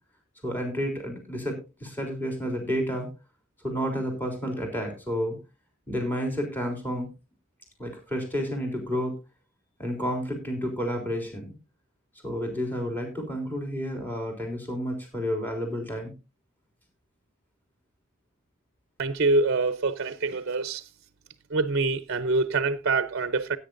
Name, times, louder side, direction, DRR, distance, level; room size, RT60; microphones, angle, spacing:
voice 1, 0.4-3.1 3.6-5.4 5.9-7.1 7.8-9.1 9.8-11.5 12.2-16.1, equal, 10° left, 3.5 m, -30 dB
voice 2, 19.0-20.9 21.5-23.6, right 3 dB, 55° right, 0.7 m, -25 dB
16.5 x 9.2 x 2.6 m
head